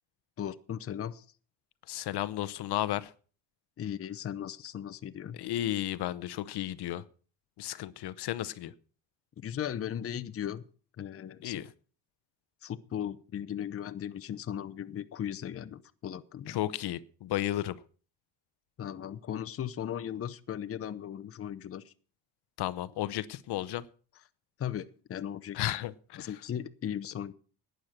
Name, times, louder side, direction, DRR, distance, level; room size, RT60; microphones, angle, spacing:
voice 1, 0.4-1.3 3.8-5.4 9.4-10.6 11.0-11.6 12.6-16.6 18.8-21.9 24.6-25.6 26.2-27.3, left 9 dB, 35° left, 12 dB, 0.7 m, -37 dB
voice 2, 1.9-3.1 5.4-7.0 7.6-8.7 11.4-11.7 16.5-17.8 22.6-23.9 25.5-26.3, left 14 dB, 65° left, 17 dB, 0.7 m, -33 dB
11.5 x 9.2 x 5.9 m, 0.41 s
cardioid pair, 135°, 42 cm